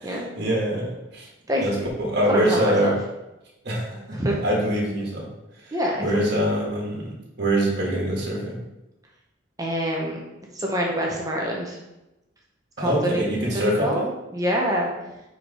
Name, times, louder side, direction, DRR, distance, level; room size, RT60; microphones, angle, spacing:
voice 1, 0.0-1.3 1.6-3.0 3.6-5.3 5.6-8.6 12.8-14.1, right 1 dB, 55° right, -3 dB, 1.7 m, -24 dB
voice 2, 1.5-1.8 2.3-3.0 4.1-4.4 5.7-6.0 6.3-6.4 9.6-10.2 10.5-11.8 12.8-13.2 13.5-14.0 14.3-14.9, equal, 20° right, -2 dB, 0.9 m, -25 dB
4.8 x 4.7 x 4.9 m, 0.96 s
head